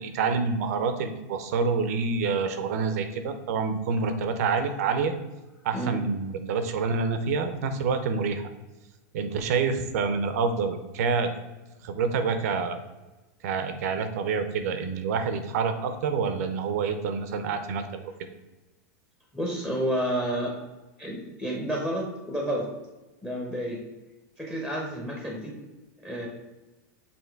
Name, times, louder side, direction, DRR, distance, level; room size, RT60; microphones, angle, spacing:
voice 1, 0.0-5.1 5.6-8.5 9.1-11.3 11.8-12.8 13.4-18.0, right 5 dB, 65° right, 8 dB, 0.8 m, -27 dB
voice 2, 19.3-20.5 21.0-22.7 23.2-23.8 24.4-25.5 26.0-26.3, equal, 5° left, -1 dB, 0.9 m, -30 dB
7.0 x 2.9 x 4.6 m, 1.1 s
supercardioid pair, 155°, 9 cm